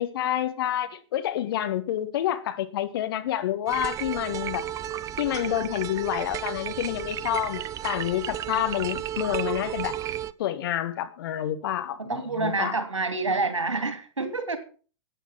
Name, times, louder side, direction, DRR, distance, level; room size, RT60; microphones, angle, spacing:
voice 1, 0.0-4.7 5.2-9.9 10.4-12.7, left 12 dB, 50° left, 1.8 m, -28 dB
sound 1, 3.7-10.3, right 11 dB, 20° right, 0.6 m, -33 dB
voice 2, 12.0-14.6, right 3 dB, 75° right, 2.8 m, -28 dB
13.5 x 9.2 x 5.9 m
figure-of-eight pair, 105°, 15 cm